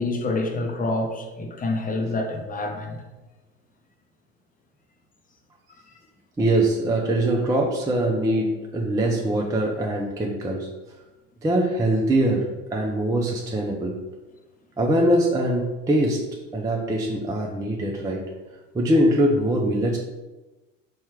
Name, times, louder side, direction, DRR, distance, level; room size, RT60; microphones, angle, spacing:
voice 1, 0.0-3.0, left 2 dB, 20° left, 3 dB, 0.7 m, -27 dB
voice 2, 6.4-10.7 11.4-14.0 14.8-16.2 16.5-18.2 18.7-20.0, right 1 dB, 10° right, -1 dB, 0.4 m, -22 dB
4.2 x 2.3 x 4.6 m, 1.1 s
hypercardioid pair, 75°, 39 cm